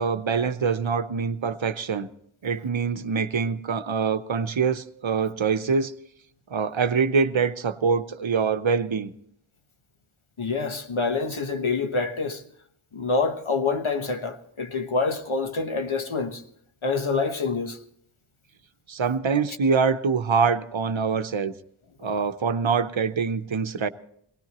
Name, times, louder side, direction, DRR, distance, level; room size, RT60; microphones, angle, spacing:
voice 1, 0.0-2.1 2.4-5.9 6.5-9.1 18.9-21.5 22.0-23.9, right 5 dB, 65° right, 0.9 m, -24 dB
voice 2, 10.4-12.4 12.9-16.4 16.8-17.8 22.0-22.1, left 4 dB, 70° left, 1.3 m, -26 dB
22.5 x 18.0 x 3.0 m
wide cardioid pair, 50°, 50 cm